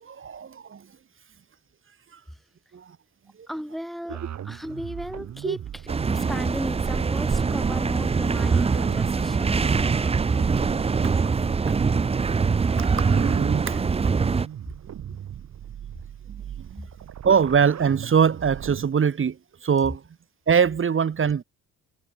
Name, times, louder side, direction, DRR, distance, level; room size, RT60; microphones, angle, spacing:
voice 1, 0.0-0.8 2.7-2.8 5.4-5.6 10.4-10.5 10.9-11.0 11.7-11.8 12.3-12.7 13.1-13.8 16.3-16.4 16.7-16.9 17.2-19.4 19.6-20.0 20.5-21.4, right 7 dB, 45° right, 2.4 m, -23 dB
voice 2, 3.5-5.6 6.1-9.7, equal, ahead, 2.4 m, -35 dB
sound 1, 4.1-18.9, right 10 dB, 65° right, 6.1 m, -38 dB
sound 2, 5.9-14.5, right 5 dB, 20° right, 0.6 m, -23 dB
cardioid pair, 90°, 30 cm